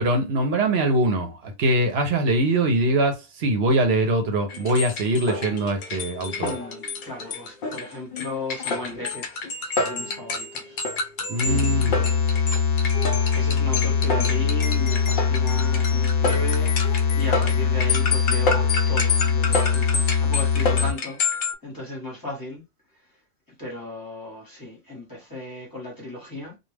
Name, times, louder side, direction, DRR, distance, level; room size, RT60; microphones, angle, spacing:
voice 1, 0.0-6.6 11.3-12.0, right 1 dB, 70° right, 0.9 m, -22 dB
sound 1, 4.5-21.5, left 4 dB, 60° left, 0.6 m, -29 dB
voice 2, 6.4-9.2 9.7-10.8 11.4-11.7 13.3-22.6 23.6-26.6, left 1 dB, 20° left, 1.1 m, -35 dB
sound 2, 11.5-20.9, left 6 dB, 85° left, 0.9 m, -22 dB
2.3 x 2.3 x 3.2 m
omnidirectional pair, 1.1 m